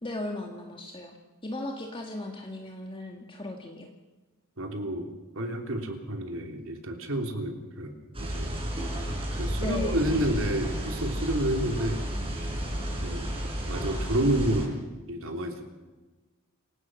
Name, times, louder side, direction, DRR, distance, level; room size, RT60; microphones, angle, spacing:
voice 1, 0.0-1.2 1.4-3.9 9.6-10.2, left 1 dB, 25° left, 2 dB, 1.8 m, -37 dB
voice 2, 4.6-5.1 5.3-8.5 9.0-12.0 13.0-14.8 15.1-15.6, right 1 dB, 65° right, 4 dB, 3.3 m, -30 dB
sound 1, 8.1-14.7, equal, 25° right, 5.9 m, -32 dB
28.0 x 17.5 x 6.3 m, 1.2 s
head